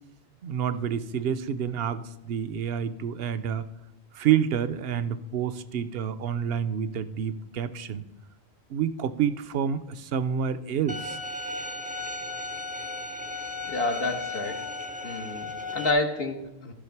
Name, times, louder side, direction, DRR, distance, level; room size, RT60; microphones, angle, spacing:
voice 1, 0.4-3.6 4.1-8.0 8.7-11.2, right 8 dB, 75° right, 14 dB, 0.8 m, -28 dB
Bowed string instrument, 10.9-15.9, left 2 dB, 15° right, 0.3 m, -35 dB
voice 2, 13.7-14.7 15.0-16.7, left 2 dB, 65° left, 3 dB, 1.2 m, -29 dB
14.0 x 6.2 x 4.6 m, 0.93 s
omnidirectional pair, 1.1 m